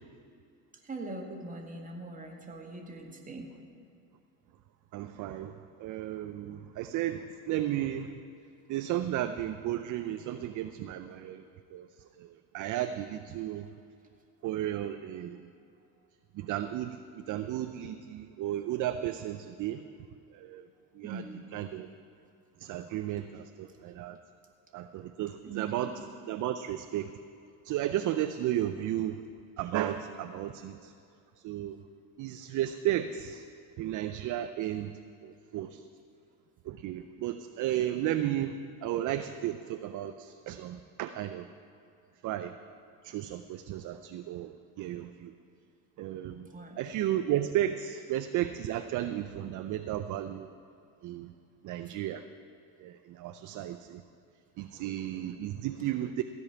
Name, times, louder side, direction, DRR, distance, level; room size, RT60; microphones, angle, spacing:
voice 1, 0.8-3.5 21.0-21.4 25.5-25.9 46.5-46.8 55.8-55.9, right 3 dB, 15° right, 1 dB, 2.0 m, -41 dB
voice 2, 4.9-5.5 5.8-8.1 8.7-11.4 11.7-11.9 12.2-13.7 14.4-15.5 16.3-19.8 20.3-20.7 21.0-21.2 21.5-21.9 22.6-24.2 24.7-26.0 26.3-27.1 27.6-29.2 29.6-30.9 31.4-31.8 32.2-33.5 33.8-35.8 36.7-38.6 38.8-41.5 42.2-42.5 43.0-45.3 46.0-46.5 46.8-50.5 51.0-51.3 51.6-52.3 52.8-54.0 54.6-56.2, right 12 dB, 45° right, 9 dB, 0.6 m, -34 dB
15.0 x 5.4 x 9.3 m, 2.5 s
supercardioid pair, 100°, 45 cm